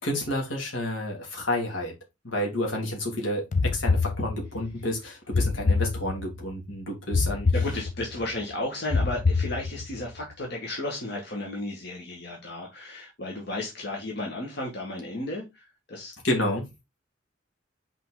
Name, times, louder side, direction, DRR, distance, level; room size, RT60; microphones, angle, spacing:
voice 1, 0.0-1.9 2.2-7.5 16.2-16.7, left 1 dB, 75° left, 2.8 m, -30 dB
sound 1, 3.5-4.7 5.3-6.5 7.1-8.3 8.9-10.1, left 4 dB, 40° left, 0.4 m, -26 dB
voice 2, 7.5-16.1, left 1 dB, 55° left, 1.9 m, -34 dB
5.8 x 5.1 x 4.0 m
head